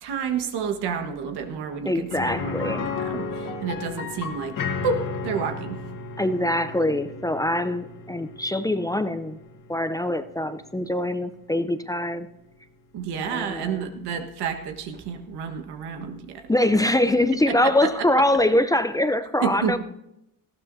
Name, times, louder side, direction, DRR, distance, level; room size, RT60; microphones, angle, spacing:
voice 1, 0.0-4.6 4.8-5.8 12.9-16.4 17.5-17.9 19.4-19.8, right 6 dB, 85° right, 5 dB, 1.5 m, -30 dB
voice 2, 1.8-2.9 6.2-9.4 9.7-12.3 13.3-13.9 16.5-19.8, left 1 dB, 10° left, 10 dB, 0.5 m, -23 dB
sound 1, 2.1-11.9 12.2-12.3 14.7-14.8, left 4 dB, 55° left, 1.9 m, -34 dB
19.0 x 14.0 x 2.7 m, 0.85 s
cardioid pair, 105°, 38 cm